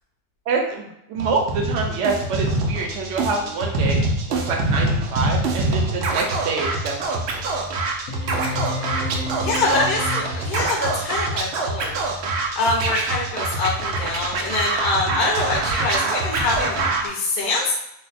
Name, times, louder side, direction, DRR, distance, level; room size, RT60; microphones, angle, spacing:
voice 1, 0.5-4.0 4.3-7.3, right 4 dB, 60° right, 1 dB, 0.8 m, -26 dB
Scratching (performance technique), 1.2-17.1, right 2 dB, 90° right, 0.5 m, -25 dB
sound 1, 8.1-10.7, left 1 dB, 75° left, 1.0 m, -31 dB
voice 2, 9.4-12.0 12.6-17.7, left 2 dB, 50° left, -4 dB, 0.7 m, -24 dB
2.7 x 2.1 x 4.0 m, 0.80 s
omnidirectional pair, 1.7 m